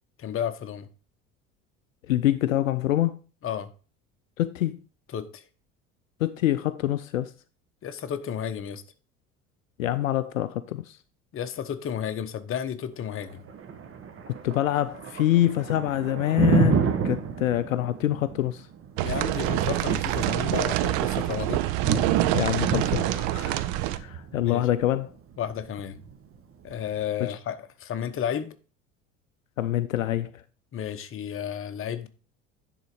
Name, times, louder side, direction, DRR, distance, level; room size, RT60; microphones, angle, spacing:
voice 1, 0.2-0.9 3.4-3.7 5.1-5.4 7.8-8.8 11.3-13.4 19.0-21.6 24.3-24.7 25.4-26.0 26.6-28.5 30.7-32.1, left 9 dB, 30° left, 0.9 m, -32 dB
voice 2, 2.1-3.2 4.4-4.8 6.2-7.3 9.8-11.0 14.3-18.7 22.3-25.1 27.2-27.4 29.6-30.4, left 13 dB, 80° left, 0.5 m, -26 dB
Thunder, 13.0-27.0, right 6 dB, 35° right, 1.3 m, -30 dB
sound 1, 19.0-24.0, right 15 dB, 55° right, 0.7 m, -26 dB
10.5 x 3.9 x 4.8 m
figure-of-eight pair, 65°, 40 cm